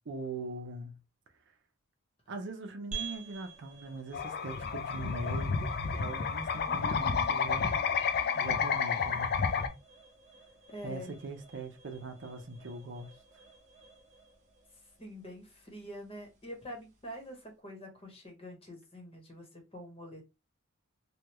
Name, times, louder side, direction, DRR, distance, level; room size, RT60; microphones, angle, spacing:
voice 1, 0.1-0.9 2.3-7.7 8.3-9.7 10.8-13.1, right 2 dB, 60° right, 0.6 m, -41 dB
sound 1, 2.9-17.5, right 5 dB, 35° right, 0.9 m, -51 dB
sound 2, 4.1-9.7, left 6 dB, 50° left, 0.4 m, -31 dB
voice 2, 6.7-7.6 10.7-11.1 15.0-20.2, equal, 30° left, 1.1 m, -46 dB
3.3 x 2.3 x 2.9 m
head